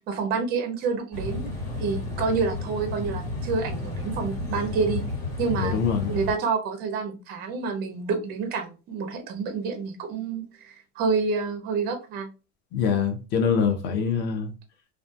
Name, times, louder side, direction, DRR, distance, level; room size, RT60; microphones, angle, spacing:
voice 1, 0.1-1.4 1.8-5.0 5.4-5.8 6.1-12.3, right 5 dB, 25° right, 0.4 m, -28 dB
sound 1, 1.1-6.3, left 2 dB, 55° left, 1.3 m, -32 dB
voice 2, 5.5-6.2 12.7-14.5, left 6 dB, 30° left, 0.5 m, -24 dB
2.2 x 2.2 x 2.6 m
supercardioid pair, 150°, 38 cm